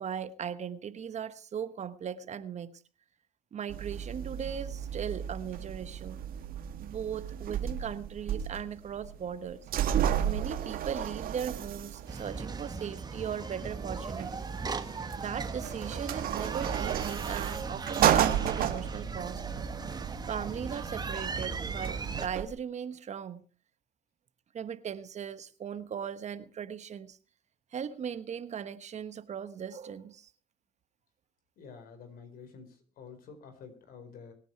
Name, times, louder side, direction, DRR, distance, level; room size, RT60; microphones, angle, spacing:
voice 1, 0.0-2.7 3.5-6.2 6.8-9.7 10.2-14.5 15.2-19.4 20.3-23.4 24.5-27.2 27.7-30.3, right 8 dB, 45° right, 1.2 m, -38 dB
sound 1, 3.7-22.5, right 10 dB, 65° right, 1.7 m, -33 dB
sound 2, 12.1-22.3, right 4 dB, 25° right, 1.3 m, -38 dB
voice 2, 31.6-34.3, left 5 dB, 65° left, 4.6 m, -49 dB
23.0 x 9.2 x 4.6 m
supercardioid pair, 85°, 16 cm